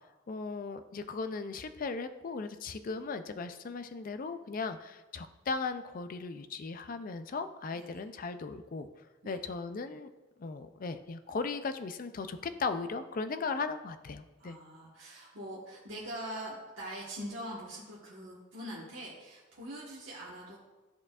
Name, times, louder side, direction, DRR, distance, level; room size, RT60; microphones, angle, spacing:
voice 1, 0.3-10.1 10.4-14.6, left 4 dB, 45° left, 10 dB, 0.4 m, -37 dB
voice 2, 14.4-20.6, right 1 dB, 65° right, -6 dB, 1.4 m, -43 dB
13.0 x 4.4 x 2.4 m, 1.2 s
head